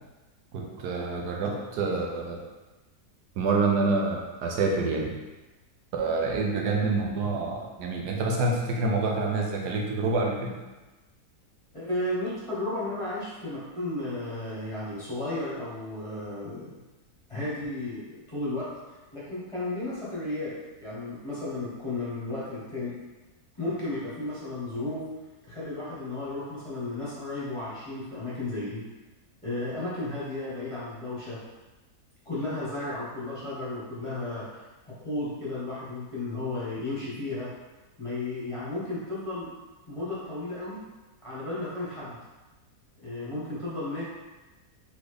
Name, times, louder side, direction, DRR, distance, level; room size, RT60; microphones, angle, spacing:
voice 1, 0.5-2.4 3.4-5.1 5.9-10.5, right 3 dB, 85° right, 0 dB, 1.3 m, -27 dB
voice 2, 11.7-16.7 17.3-18.7 19.1-20.5 20.8-22.9 23.6-25.1 25.5-28.8 29.4-31.4 32.2-37.5 38.0-39.5 39.9-40.8 41.2-42.2 43.0-44.0, left 2 dB, 20° left, -9 dB, 1.1 m, -33 dB
4.0 x 3.5 x 3.3 m, 1.2 s
omnidirectional pair, 1.7 m